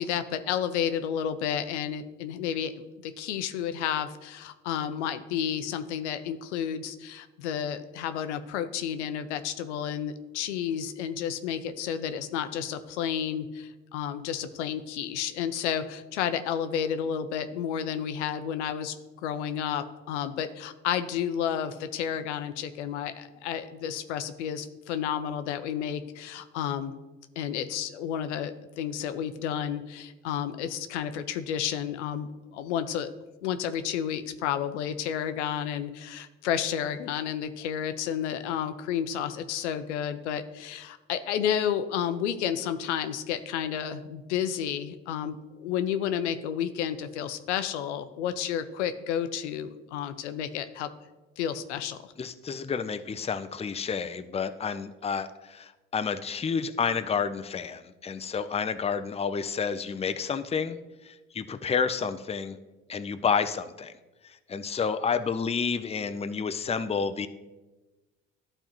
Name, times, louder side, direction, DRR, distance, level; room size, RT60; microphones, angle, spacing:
voice 1, 0.0-2.7 3.0-18.9 19.2-26.9 27.4-33.1 33.4-50.9 51.4-52.0, left 9 dB, 85° left, 10 dB, 0.6 m, -31 dB
voice 2, 52.2-60.8 61.0-62.6 62.9-63.9 64.5-67.3, left 6 dB, 20° left, 10 dB, 0.5 m, -30 dB
13.0 x 4.4 x 3.0 m, 1.1 s
hypercardioid pair, 55°, 34 cm